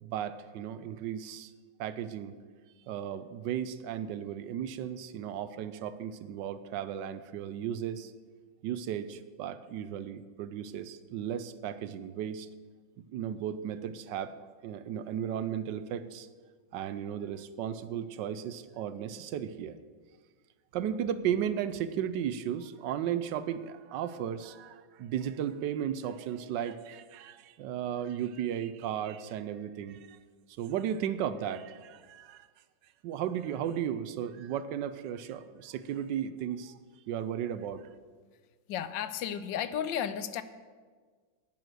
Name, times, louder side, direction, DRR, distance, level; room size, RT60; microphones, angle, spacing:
voice 1, 0.0-1.5 1.8-2.3 2.9-8.1 8.6-12.5 13.0-16.3 16.7-19.8 20.7-30.2 30.6-32.5 33.0-36.8 37.1-37.9, right 9 dB, 75° right, 13 dB, 1.2 m, -35 dB
voice 2, 38.7-40.4, left 9 dB, 80° left, 13 dB, 1.3 m, -33 dB
11.0 x 9.3 x 6.4 m, 1.5 s
omnidirectional pair, 2.0 m